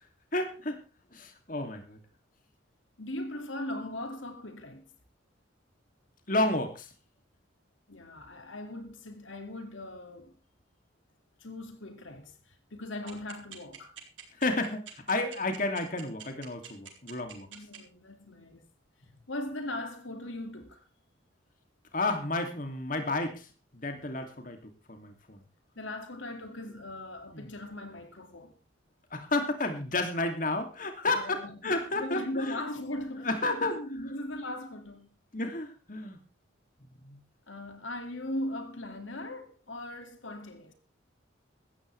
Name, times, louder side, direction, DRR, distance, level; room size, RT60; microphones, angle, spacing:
voice 1, 0.3-0.8 1.1-2.0 6.3-6.9 13.0-13.1 14.3-17.5 21.9-23.5 23.7-25.4 27.3-27.5 29.1-32.6 33.2-33.8 35.3-36.2 37.0-37.2, left 2 dB, 45° left, 2.8 m, -31 dB
voice 2, 3.0-4.9 7.9-10.3 11.4-14.0 17.5-18.7 19.3-20.9 25.8-28.6 31.0-35.1 37.5-40.7, left 1 dB, 85° left, 2.5 m, -39 dB
sound 1, 13.1-17.8, right 9 dB, 75° right, 4.2 m, -45 dB
16.5 x 14.0 x 3.4 m
head